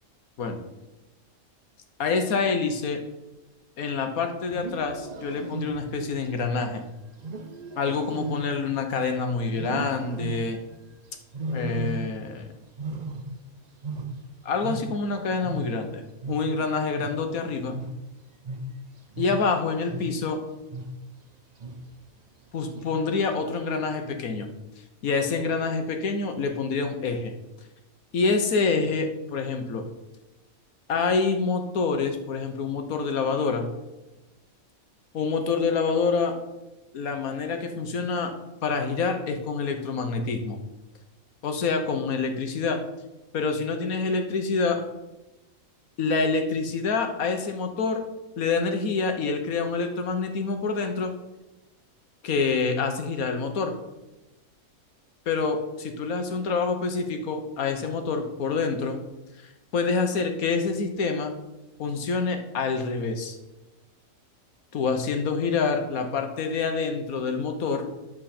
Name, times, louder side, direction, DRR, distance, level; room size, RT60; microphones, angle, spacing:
voice 1, 2.0-3.0 3.8-6.8 7.8-10.6 11.5-12.5 14.4-16.0 16.3-17.7 19.2-20.4 22.5-24.5 25.0-27.3 28.1-29.9 30.9-33.7 35.1-36.3 36.9-38.3 38.6-40.6 41.4-42.8 43.3-44.8 46.0-48.0 48.4-51.1 52.2-53.7 55.3-59.0 59.4-61.3 61.8-63.4 64.7-67.9, left 4 dB, 80° left, 5 dB, 1.5 m, -27 dB
Wild animals, 4.4-6.1 7.2-9.1 9.5-10.7 11.3-12.4 12.7-15.2 15.4-20.3 20.7-21.2 21.6-22.0 22.7-23.2, right 2 dB, 40° right, 0.6 m, -36 dB
10.0 x 7.4 x 4.3 m, 1.0 s
omnidirectional pair, 1.5 m